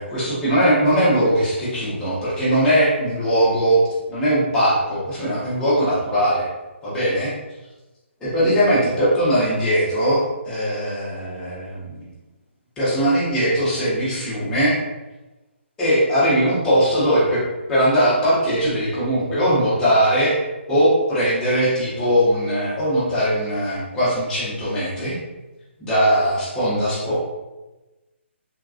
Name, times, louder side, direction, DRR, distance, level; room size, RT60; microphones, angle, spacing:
voice 1, 0.0-3.8 4.1-6.5 6.8-7.3 8.2-12.0 12.8-14.8 15.8-17.4 17.7-20.4 20.7-25.2 25.9-27.2, equal, 10° left, -10 dB, 1.1 m, -20 dB
3.6 x 2.8 x 2.5 m, 1.1 s
hypercardioid pair, 160°, 7 cm